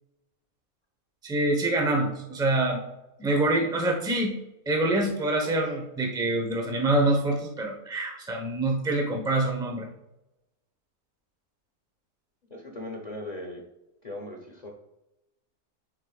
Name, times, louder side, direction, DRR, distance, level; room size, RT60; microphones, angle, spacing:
voice 1, 1.2-2.8 3.2-4.3 4.7-9.9, right 2 dB, 5° right, 1 dB, 0.8 m, -25 dB
voice 2, 12.5-13.6 14.0-14.7, left 1 dB, 35° left, 1 dB, 0.8 m, -38 dB
10.5 x 4.8 x 2.4 m, 0.94 s
omnidirectional pair, 1.7 m